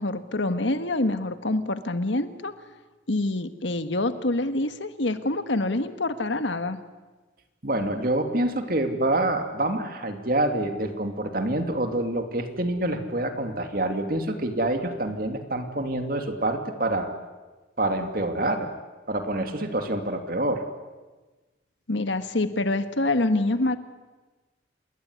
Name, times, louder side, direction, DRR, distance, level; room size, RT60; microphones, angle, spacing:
voice 1, 0.0-2.5 3.1-6.8 21.9-23.8, left 2 dB, 85° left, 10 dB, 1.6 m, -26 dB
voice 2, 7.6-17.1 17.8-18.7 19.1-20.6, right 1 dB, 50° right, 6 dB, 2.7 m, -26 dB
28.0 x 21.5 x 9.7 m, 1.2 s
head